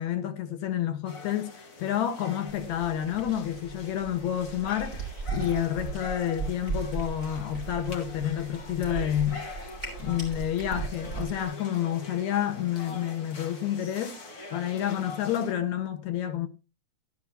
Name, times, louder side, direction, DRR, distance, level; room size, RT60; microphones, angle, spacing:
voice 1, 0.0-9.5 10.0-14.3 14.5-16.5, left 10 dB, 80° left, 2.4 m, -29 dB
sound 1, 1.1-15.5, left 3 dB, 50° left, 3.0 m, -44 dB
Cat, 2.5-11.5, right 5 dB, 15° left, 6.5 m, -38 dB
14.0 x 12.0 x 2.8 m
omnidirectional pair, 3.3 m